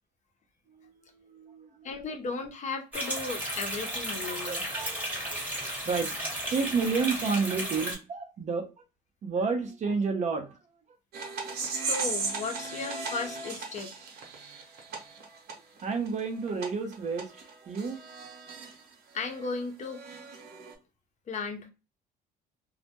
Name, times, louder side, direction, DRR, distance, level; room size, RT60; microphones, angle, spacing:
voice 1, 0.8-1.7 4.3-6.2 6.5-8.7 9.2-10.5 15.8-17.3 17.6-18.0, right 5 dB, 45° right, 0.6 m, -31 dB
voice 2, 1.8-4.7 11.7-13.9 18.5-18.6 19.1-20.0 21.3-21.7, left 4 dB, 45° left, 0.6 m, -35 dB
sound 1, 2.9-7.9, right 1 dB, 10° right, 1.3 m, -34 dB
sound 2, 11.1-18.7 19.1-20.7, right 4 dB, 70° right, 0.9 m, -37 dB
2.1 x 2.1 x 2.8 m
cardioid pair, 110°, 17 cm